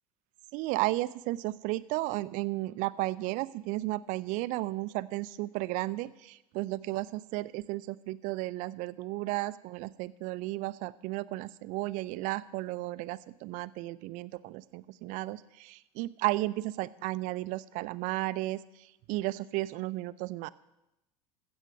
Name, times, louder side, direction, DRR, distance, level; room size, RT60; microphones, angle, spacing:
voice 1, 0.5-20.5, right 19 dB, 45° right, 17 dB, 0.5 m, -34 dB
15.5 x 7.2 x 6.3 m, 0.90 s
figure-of-eight pair, 75°, 19 cm